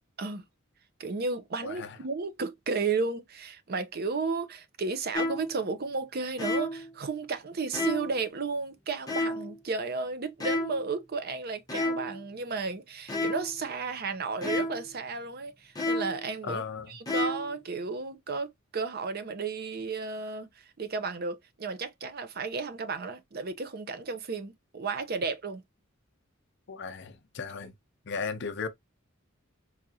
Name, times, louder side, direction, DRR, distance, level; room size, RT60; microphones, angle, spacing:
voice 1, 1.0-16.6 16.9-25.6, right 4 dB, 45° right, 0.6 m, -33 dB
voice 2, 1.6-2.0 16.4-16.9 26.7-27.7 28.0-28.7, left 5 dB, 55° left, 0.6 m, -36 dB
sound 1, 5.1-5.6 6.4-6.9 7.7-8.2 9.1-9.6 10.4-10.9 11.7-12.2 13.1-13.6 14.4-14.9 15.8-16.3 17.1-17.6, left 2 dB, 20° left, 0.8 m, -31 dB
4.7 x 2.4 x 2.7 m
head